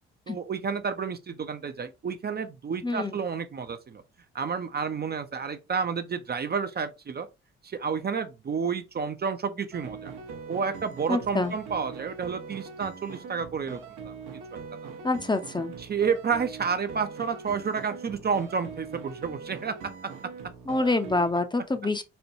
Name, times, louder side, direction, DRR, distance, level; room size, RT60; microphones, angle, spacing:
voice 1, 0.3-4.0 4.3-7.3 7.6-10.1 10.5-14.1 15.8-19.9, right 6 dB, 35° right, 0.5 m, -30 dB
voice 2, 2.8-3.1 11.1-11.5 15.0-15.7 20.7-22.0, left 2 dB, 15° left, 0.6 m, -26 dB
sound 1, 9.7-21.3, right 5 dB, 80° right, 0.9 m, -42 dB
4.3 x 2.2 x 2.7 m
supercardioid pair, 55°, 29 cm